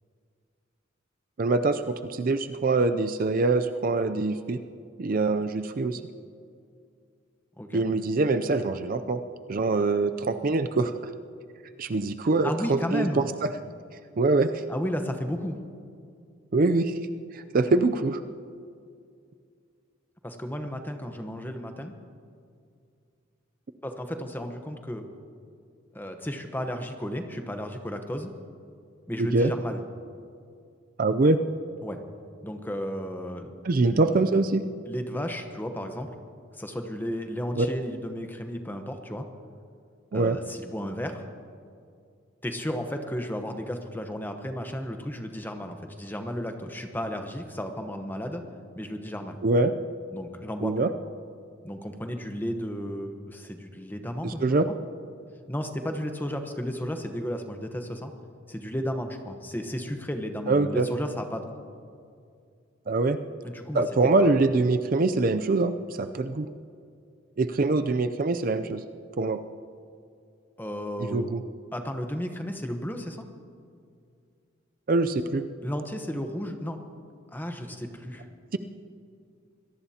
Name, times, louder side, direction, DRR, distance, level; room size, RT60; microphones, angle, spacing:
voice 1, 1.4-4.6 5.0-6.0 7.7-9.2 9.5-11.1 11.8-13.5 14.2-14.7 16.5-17.0 17.3-18.2 29.2-29.5 31.0-31.4 33.6-34.6 37.6-37.7 40.1-40.4 49.4-49.7 50.6-50.9 54.2-54.7 60.5-60.9 62.9-63.2 63.7-66.5 67.4-68.8 69.2-69.4 71.0-71.4 74.9-75.4 78.5-78.6, right 3 dB, 40° right, 9 dB, 0.4 m, -24 dB
voice 2, 12.4-13.2 14.7-15.6 20.2-21.9 23.8-25.0 25.9-28.3 29.1-29.8 31.8-32.0 32.4-33.5 33.8-34.1 34.9-36.1 36.6-39.2 40.1-41.2 42.4-48.4 48.8-49.4 50.1-50.7 51.6-54.6 55.5-58.1 58.5-61.5 63.4-63.8 64.2-64.3 70.6-71.3 71.7-73.3 75.6-76.8 77.3-78.3, equal, 10° left, 5 dB, 1.0 m, -33 dB
25.0 x 18.0 x 2.8 m, 2.3 s
head